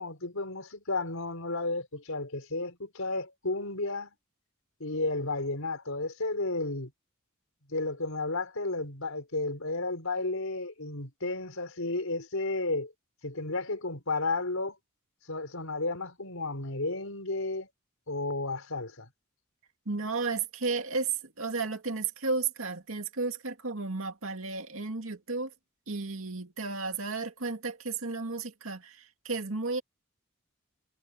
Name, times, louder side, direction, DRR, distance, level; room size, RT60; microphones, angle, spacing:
voice 1, 0.0-4.1 4.8-6.9 7.7-12.9 13.2-14.8 15.3-17.7 18.1-19.1, left 2 dB, 80° left, 4.8 m, -32 dB
voice 2, 19.9-25.5 25.9-29.8, right 4 dB, 75° right, 2.3 m, -33 dB
head